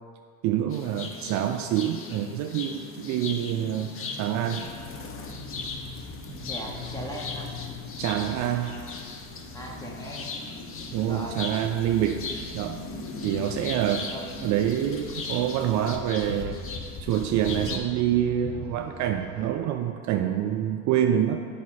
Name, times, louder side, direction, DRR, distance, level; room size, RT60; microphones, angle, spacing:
voice 1, 0.4-4.7 8.0-8.8 10.9-12.3 12.5-12.8 13.2-14.1 14.4-16.6 17.0-21.4, right 10 dB, 50° right, 5 dB, 0.4 m, -26 dB
sound 1, 0.7-17.8, left 4 dB, 35° left, 0.7 m, -38 dB
sound 2, 4.6-19.5, equal, 25° right, 1.2 m, -45 dB
voice 2, 6.4-7.5 9.5-10.3 10.8-11.4 14.1-14.2, equal, 10° left, -1 dB, 1.0 m, -39 dB
7.1 x 4.9 x 4.2 m, 2.2 s
supercardioid pair, 110°, 38 cm